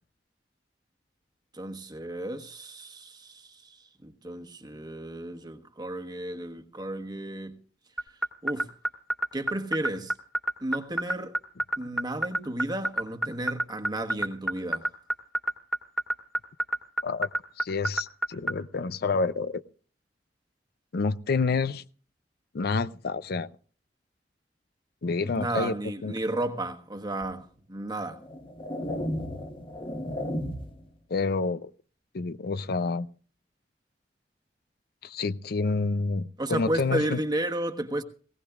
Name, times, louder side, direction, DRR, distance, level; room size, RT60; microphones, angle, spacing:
voice 1, 1.5-7.5 8.4-8.7 9.3-10.1 10.6-11.3 11.8-14.9 25.2-28.2 36.4-38.0, right 1 dB, 25° right, 1.3 m, -33 dB
sound 1, 8.0-18.5, right 2 dB, 5° left, 1.6 m, -25 dB
voice 2, 17.6-19.6 20.9-21.8 22.5-23.5 25.0-25.7 26.0-26.1 31.1-31.7 32.1-33.1 35.0-37.2, left 4 dB, 60° left, 0.5 m, -28 dB
sound 2, 27.2-27.4 28.1-30.9, left 1 dB, 30° left, 1.2 m, -34 dB
19.0 x 17.0 x 2.4 m
head